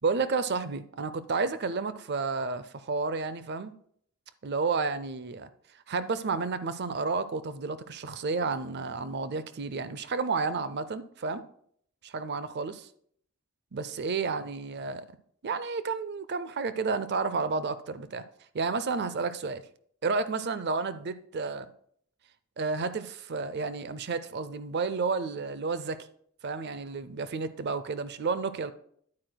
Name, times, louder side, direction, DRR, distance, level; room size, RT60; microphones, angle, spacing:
voice 1, 0.0-3.7 4.4-5.5 5.9-11.4 12.0-12.9 13.7-15.1 15.4-18.2 18.5-19.6 20.0-21.7 22.6-26.0 26.4-28.7, right 4 dB, 50° right, 0.5 m, -31 dB
9.6 x 8.8 x 2.2 m
head